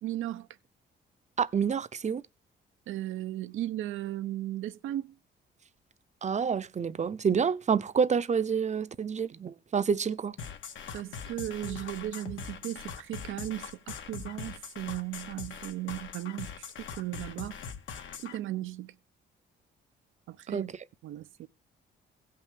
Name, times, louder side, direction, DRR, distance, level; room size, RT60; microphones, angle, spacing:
voice 1, 0.0-0.5 2.9-5.1 10.9-17.6 18.2-18.9 20.3-20.7 21.0-21.5, right 14 dB, 80° right, 0.8 m, -36 dB
voice 2, 1.4-2.2 6.2-10.4 20.5-20.6, right 6 dB, 35° right, 0.8 m, -28 dB
sound 1, 10.4-18.4, left 6 dB, 75° left, 1.9 m, -41 dB
16.0 x 5.7 x 7.5 m
cardioid pair, 90°, 20 cm